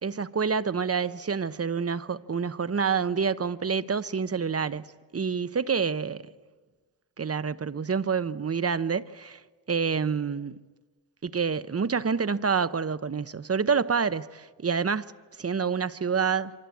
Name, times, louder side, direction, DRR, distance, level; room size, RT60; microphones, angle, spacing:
voice 1, 0.0-4.9 5.1-6.3 7.2-9.4 9.7-10.6 11.2-15.1 15.4-16.5, right 6 dB, 35° right, 0.8 m, -27 dB
28.0 x 24.5 x 8.4 m
cardioid pair, 90°, 43 cm